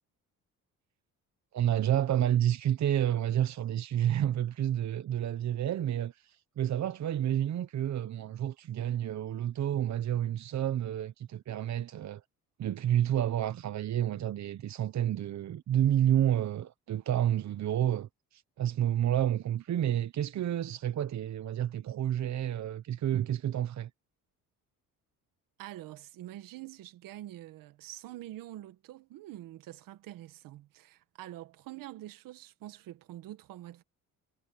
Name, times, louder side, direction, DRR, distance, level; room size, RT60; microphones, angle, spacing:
voice 1, 1.5-12.2 12.6-23.9, right 11 dB, 55° right, 1.1 m, -30 dB
voice 2, 25.6-33.8, right 14 dB, 75° right, 1.9 m, -46 dB
supercardioid pair, 80°, 33 cm